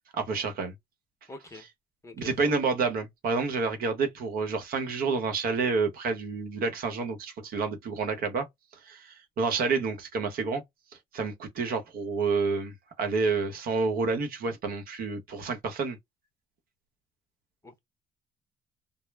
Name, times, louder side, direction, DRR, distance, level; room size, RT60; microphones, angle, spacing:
voice 1, 0.1-0.7 2.2-8.5 8.8-10.6 11.1-16.0, right 4 dB, 60° right, 0.9 m, -29 dB
voice 2, 1.3-1.6 2.0-2.5 17.6-17.8, left 2 dB, 20° left, 0.7 m, -45 dB
2.0 x 2.0 x 3.3 m
cardioid pair, 110°, 17 cm